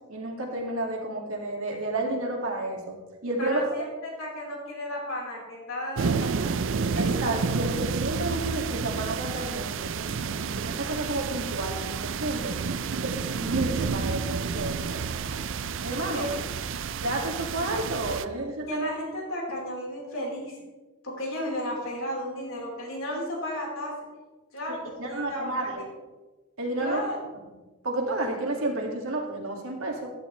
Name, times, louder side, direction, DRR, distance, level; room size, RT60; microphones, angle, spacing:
voice 1, 0.1-3.0 3.2-3.6 7.0-12.6 13.0-15.0 15.8-16.3 16.9-18.9 24.7-25.8 26.6-27.0 27.8-30.1, right 2 dB, 75° right, 0 dB, 2.1 m, -31 dB
voice 2, 3.4-6.7 16.1-16.3 18.7-20.6 21.0-23.9 24.5-25.7 26.8-27.2, equal, 65° left, -2 dB, 4.1 m, -34 dB
sound 1, 6.0-18.2, right 5 dB, 55° right, 0.4 m, -30 dB
15.0 x 11.5 x 3.2 m, 1.2 s
head